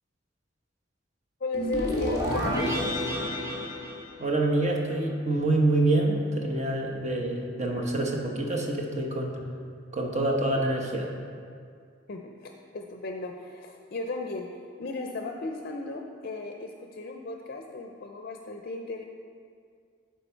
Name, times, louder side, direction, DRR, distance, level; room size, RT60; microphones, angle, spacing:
voice 1, 1.4-2.8 12.1-19.0, left 3 dB, 55° left, 3 dB, 0.5 m, -35 dB
sound 1, 1.5-4.8, equal, 20° right, 1.8 m, -30 dB
voice 2, 4.2-9.3 9.9-11.1, right 2 dB, 40° right, 0 dB, 1.0 m, -26 dB
11.5 x 4.6 x 4.5 m, 2.2 s
head